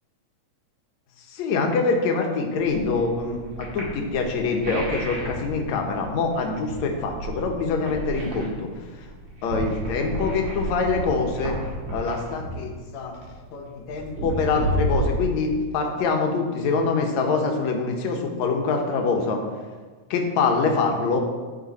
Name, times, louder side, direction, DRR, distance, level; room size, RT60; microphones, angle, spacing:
voice 1, 1.3-8.7 9.4-11.6 11.9-13.2 13.5-19.4 20.1-21.2, left 4 dB, 70° left, 2 dB, 2.3 m, -25 dB
sound 1, 2.6-16.0, right 1 dB, 65° right, 3.3 m, -32 dB
sound 2, 5.2-6.2 7.0-8.1 9.8-11.2, equal, 80° right, 2.5 m, -42 dB
12.0 x 5.4 x 4.2 m, 1.4 s
omnidirectional pair, 3.5 m